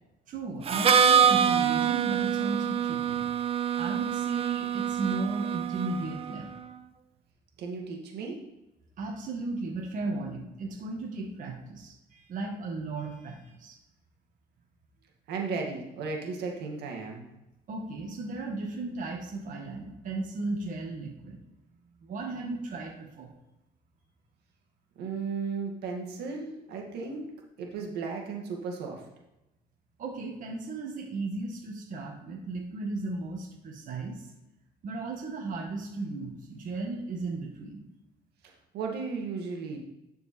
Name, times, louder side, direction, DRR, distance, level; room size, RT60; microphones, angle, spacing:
voice 1, 0.3-3.2 3.7-6.6 9.0-13.8 17.7-21.4 22.0-23.3 30.0-34.3 34.8-37.9, right 3 dB, 50° right, 0 dB, 1.7 m, -35 dB
Harmonica, 0.7-6.4, right 7 dB, 35° right, 0.5 m, -25 dB
voice 2, 7.6-8.4 15.3-17.2 25.0-27.3 27.6-29.0 38.7-39.8, right 4 dB, 75° right, 1 dB, 1.9 m, -35 dB
10.5 x 4.7 x 4.4 m, 0.95 s
cardioid pair, 110°, 17 cm